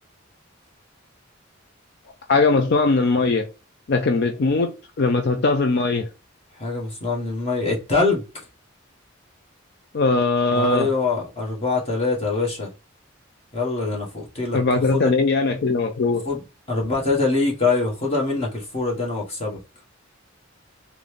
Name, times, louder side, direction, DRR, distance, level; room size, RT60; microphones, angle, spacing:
voice 1, 2.3-3.5 3.9-6.1 9.9-10.9 14.5-16.2, left 3 dB, 55° left, 0.5 m, -20 dB
voice 2, 6.6-8.4 10.5-12.7 13.5-14.6 14.9-15.1 16.2-16.4 16.7-19.6, left 3 dB, 30° left, 1.4 m, -24 dB
3.9 x 2.2 x 3.3 m
head